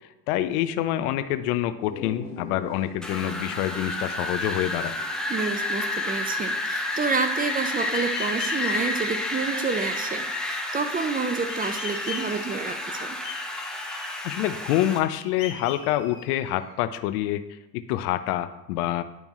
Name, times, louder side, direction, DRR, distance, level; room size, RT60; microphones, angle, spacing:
voice 1, 0.3-5.0 14.2-19.0, left 13 dB, 65° left, 12 dB, 0.7 m, -26 dB
sound 1, 1.8-7.1, left 4 dB, 80° left, 1.3 m, -44 dB
Wind, 3.0-15.0, left 1 dB, ahead, 1.1 m, -30 dB
voice 2, 5.3-13.2, right 4 dB, 20° right, 7 dB, 0.6 m, -29 dB
sound 2, 7.9-8.8 11.5-12.7 13.2-14.7 15.1-16.7, left 7 dB, 45° left, 2.0 m, -40 dB
10.5 x 5.2 x 3.1 m, 0.95 s
hypercardioid pair, 85°, 49 cm